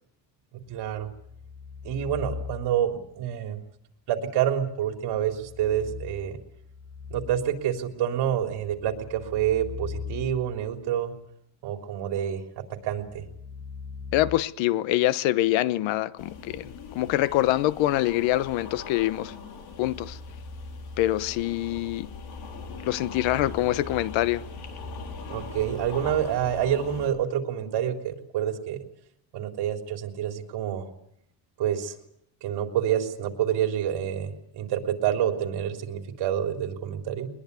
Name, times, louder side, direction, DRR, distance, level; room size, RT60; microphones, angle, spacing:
sound 1, 0.7-3.0 5.1-7.7 8.3-10.8 12.8-14.4, left 5 dB, 35° left, 2.3 m, -40 dB
voice 1, 0.7-1.1 1.8-3.6 4.1-6.4 7.1-11.1 11.6-12.4 12.8-13.2 25.3-28.8 29.3-30.8 31.6-31.9 32.4-37.3, right 10 dB, 60° right, 3.7 m, -27 dB
voice 2, 14.1-19.3 19.8-20.2 21.0-22.1 22.8-24.4, left 15 dB, 85° left, 1.1 m, -25 dB
sound 2, 16.2-27.1, left 4 dB, 60° left, 4.1 m, -40 dB
22.5 x 21.0 x 8.3 m
cardioid pair, 160°, 44 cm